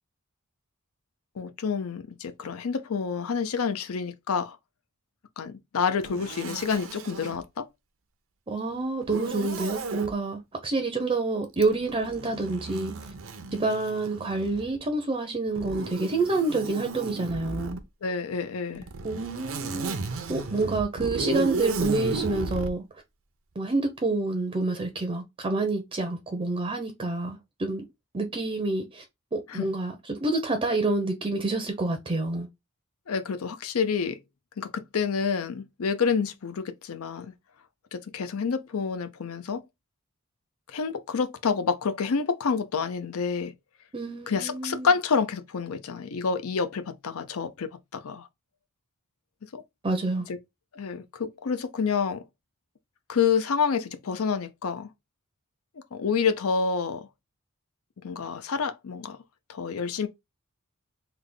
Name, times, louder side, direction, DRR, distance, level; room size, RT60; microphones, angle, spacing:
voice 1, 1.4-4.6 5.4-7.7 18.0-18.9 29.5-29.6 33.1-34.2 34.6-37.3 37.9-39.6 40.7-43.5 44.3-48.3 49.5-49.6 50.7-52.2 53.1-54.9 55.9-57.1 58.0-59.2 59.5-60.1, left 5 dB, 75° left, 0.5 m, -28 dB
Zipper (clothing), 6.0-7.4 9.0-10.1 11.5-14.8 15.6-17.8 18.8-22.7, right 4 dB, 65° right, 0.6 m, -34 dB
voice 2, 8.5-13.1 13.5-17.8 19.0-20.0 20.3-22.8 23.6-27.8 28.1-29.0 29.3-32.5 43.9-44.9 49.8-50.3, right 3 dB, 25° right, 0.6 m, -28 dB
3.4 x 2.2 x 3.7 m
head